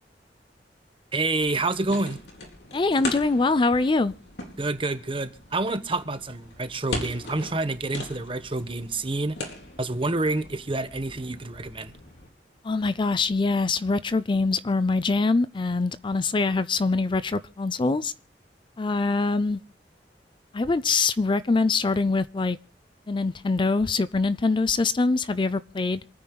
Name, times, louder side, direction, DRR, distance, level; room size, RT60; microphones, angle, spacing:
voice 1, 1.1-2.2 4.6-9.4 9.8-11.9, right 2 dB, 30° right, 1.1 m, -28 dB
sound 1, 1.4-12.3, left 2 dB, 70° left, 4.1 m, -40 dB
voice 2, 2.7-4.1 12.6-18.1 18.8-19.6 20.5-22.6 23.1-26.0, left 3 dB, 30° left, 0.5 m, -24 dB
27.5 x 9.7 x 2.3 m
head